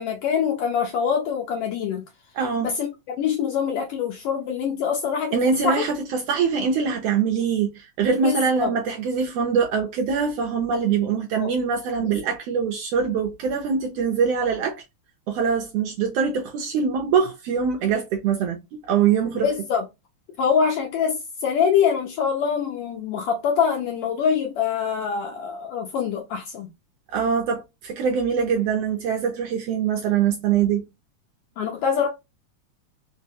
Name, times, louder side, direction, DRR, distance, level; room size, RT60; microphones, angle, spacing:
voice 1, 0.0-2.0 2.6-5.4 5.6-5.8 8.2-8.7 11.4-11.5 12.0-12.1 19.4-19.8 20.4-26.7 31.6-32.1, left 7 dB, 90° left, 1.3 m, -24 dB
voice 2, 2.3-2.7 5.3-14.8 15.3-19.5 27.1-30.8, right 6 dB, 75° right, 1.5 m, -23 dB
4.6 x 2.1 x 2.7 m
omnidirectional pair, 3.3 m